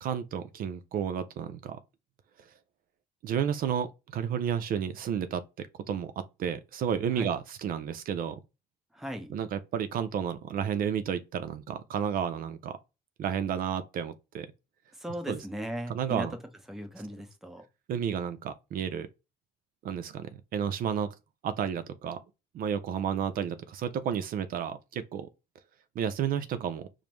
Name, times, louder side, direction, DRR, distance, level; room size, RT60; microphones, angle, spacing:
voice 1, 0.0-1.8 3.2-6.1 6.4-8.4 9.3-12.8 13.2-14.5 15.3-15.4 15.9-16.3 17.9-19.1 19.8-21.1 21.4-22.2 22.5-25.3 26.0-26.9, right 8 dB, 60° right, 0.4 m, -31 dB
voice 2, 8.9-9.3 14.9-16.3 16.7-17.6, equal, ahead, 0.7 m, -37 dB
5.0 x 2.0 x 3.0 m
cardioid pair, 110°, 17 cm